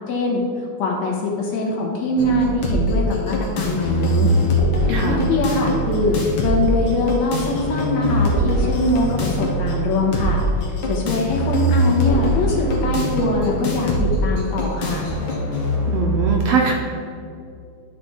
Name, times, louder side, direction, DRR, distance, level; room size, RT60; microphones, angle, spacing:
voice 1, 0.1-0.4 0.8-4.3 4.9-10.4 10.9-15.1, left 2 dB, 70° left, -2 dB, 2.5 m, -22 dB
sound 1, 2.2-16.2, equal, 55° left, 1.6 m, -22 dB
voice 2, 4.9-5.2 15.9-16.7, right 4 dB, 70° right, 0 dB, 1.6 m, -21 dB
11.5 x 4.8 x 4.2 m, 2.5 s
omnidirectional pair, 3.5 m